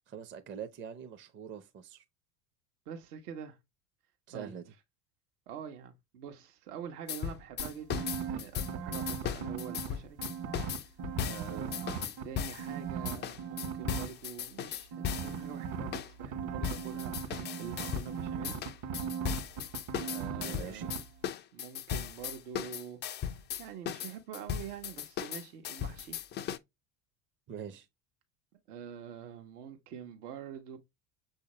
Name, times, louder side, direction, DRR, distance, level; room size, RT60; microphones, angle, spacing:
voice 1, 0.1-2.0 4.3-4.6 11.5-11.7 20.3-20.9 27.5-27.9, right 7 dB, 25° right, 0.6 m, -44 dB
voice 2, 2.9-3.6 4.3-4.5 5.5-10.2 10.6-10.8 11.2-18.6 20.0-21.0 21.5-23.2 23.6-26.2 28.7-30.8, right 8 dB, 70° right, 1.1 m, -46 dB
sound 1, 7.1-12.7 13.1-15.4 15.9-16.1 16.6-18.1 18.4-26.6, left 9 dB, 25° left, 0.3 m, -37 dB
sound 2, 7.6-9.9 10.2-12.2 12.6-14.1 14.9-20.6 20.8-21.0, right 7 dB, 55° right, 1.4 m, -38 dB
6.5 x 2.8 x 2.9 m
hypercardioid pair, 75°, 47 cm